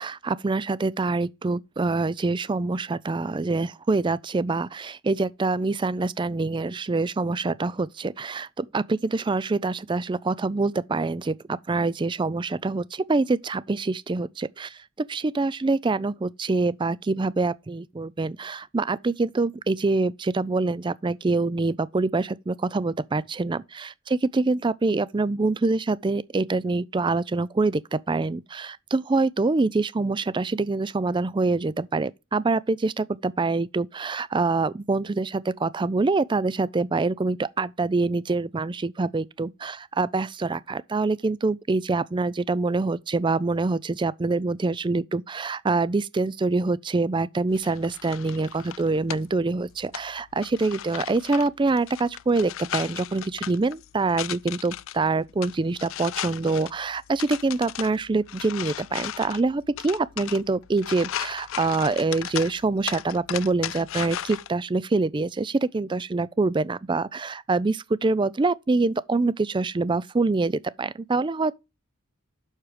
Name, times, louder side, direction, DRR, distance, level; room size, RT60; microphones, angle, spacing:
voice 1, 0.0-23.9 24.3-71.6, right 3 dB, 20° right, 0.4 m, -25 dB
sound 1, 47.5-64.5, left 11 dB, 65° left, 0.4 m, -37 dB
7.2 x 6.3 x 5.0 m
head